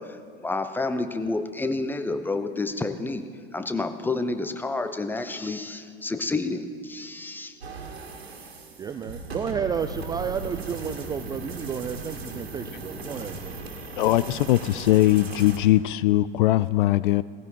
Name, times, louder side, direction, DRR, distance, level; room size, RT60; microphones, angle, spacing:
voice 1, 0.0-3.2 3.5-7.6, left 3 dB, 5° left, 10 dB, 0.8 m, -29 dB
sound 1, 7.6-15.6, right 3 dB, 75° right, 2.0 m, -37 dB
voice 2, 8.8-13.6, right 7 dB, 15° right, 10 dB, 0.3 m, -31 dB
voice 3, 14.0-17.2, left 15 dB, 55° left, 18 dB, 0.4 m, -20 dB
19.0 x 15.5 x 4.6 m, 2.4 s
figure-of-eight pair, 85°, 31 cm